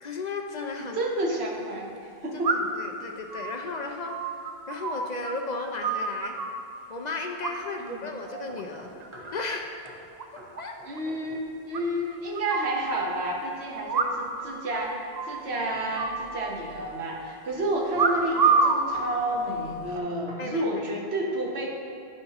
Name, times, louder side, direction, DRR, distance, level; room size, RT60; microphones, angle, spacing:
voice 1, 0.0-1.0 2.5-4.3 4.7-6.4 6.9-8.9 9.3-9.7 10.6-10.8 20.4-20.8, left 3 dB, 50° left, 3 dB, 0.6 m, -34 dB
sound 1, 0.6-0.7 2.4-2.9 3.3-5.3 5.6-6.6 7.4-7.9 8.2-8.6 9.0-9.6 9.9-10.0 10.2-10.3 10.6-10.7 11.0-11.1 11.7-12.8 13.9-14.5 14.7-14.8 15.1-15.5 16.0-16.9 17.9-18.8 19.6-19.9, right 4 dB, 50° right, 0.6 m, -27 dB
voice 2, 0.8-2.5 7.8-8.0 10.9-21.7, right 1 dB, 90° right, -1 dB, 1.3 m, -30 dB
sound 2, 8.5-9.4 9.8-10.0 10.4-10.5 10.8-11.5 11.8-12.1 15.5-16.1 16.7-17.1 17.9-18.2 18.5-18.7 18.9-20.8, equal, 30° right, 1.5 m, -47 dB
13.5 x 5.3 x 3.0 m, 2.5 s
omnidirectional pair, 1.0 m